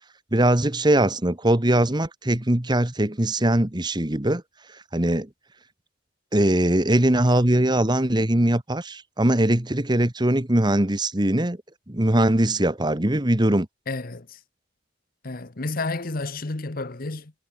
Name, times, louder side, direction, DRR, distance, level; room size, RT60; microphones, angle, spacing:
voice 1, 0.3-4.4 4.9-5.3 6.3-11.6 11.9-13.7, right 1 dB, 20° right, 1.4 m, -21 dB
voice 2, 13.9-14.3 15.2-17.3, left 3 dB, 45° left, 1.1 m, -30 dB
head